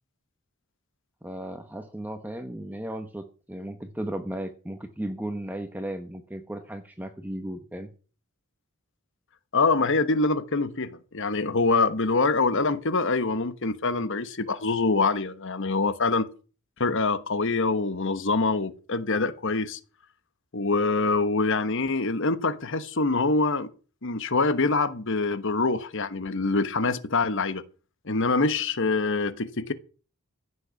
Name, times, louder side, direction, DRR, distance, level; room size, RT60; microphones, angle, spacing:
voice 1, 1.2-7.9, right 1 dB, 10° right, 1.0 m, -35 dB
voice 2, 9.5-16.3 16.8-19.8 20.5-23.7 24.0-27.6 28.1-29.7, left 3 dB, 60° left, 1.2 m, -25 dB
15.5 x 6.6 x 8.4 m
head